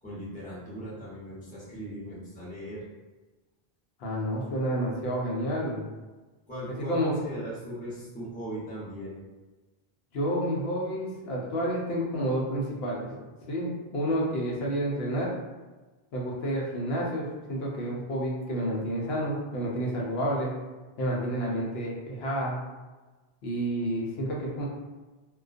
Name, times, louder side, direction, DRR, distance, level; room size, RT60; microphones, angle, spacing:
voice 1, 0.0-2.8 6.5-9.2, equal, 10° left, -9 dB, 0.7 m, -38 dB
voice 2, 4.0-5.9 6.8-7.1 10.1-13.1 13.5-15.3 16.1-20.5 21.0-22.6 23.4-24.7, equal, 80° left, -3 dB, 0.8 m, -30 dB
2.3 x 2.2 x 2.4 m, 1.2 s
omnidirectional pair, 1.0 m